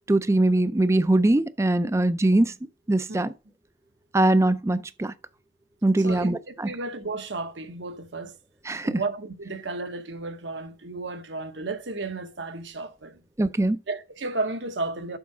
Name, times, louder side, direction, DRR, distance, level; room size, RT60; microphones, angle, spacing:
voice 1, 0.1-2.5 2.9-3.3 4.1-5.1 5.8-6.7 8.7-9.0 13.4-13.8, right 2 dB, 15° right, 0.4 m, -22 dB
voice 2, 6.0-8.4 8.8-13.2 13.9-15.2, right 3 dB, 80° right, 1.1 m, -33 dB
7.1 x 4.6 x 6.0 m
head